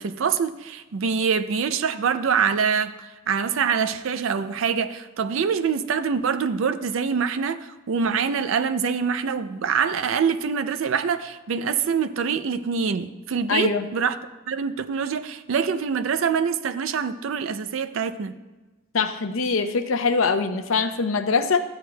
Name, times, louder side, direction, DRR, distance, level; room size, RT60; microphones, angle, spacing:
voice 1, 0.0-2.9 3.3-14.2 14.5-18.3, right 6 dB, 70° right, 10 dB, 0.4 m, -25 dB
voice 2, 13.5-13.8 18.9-21.6, left 4 dB, 80° left, 9 dB, 0.6 m, -23 dB
13.5 x 8.1 x 2.2 m, 1.2 s
head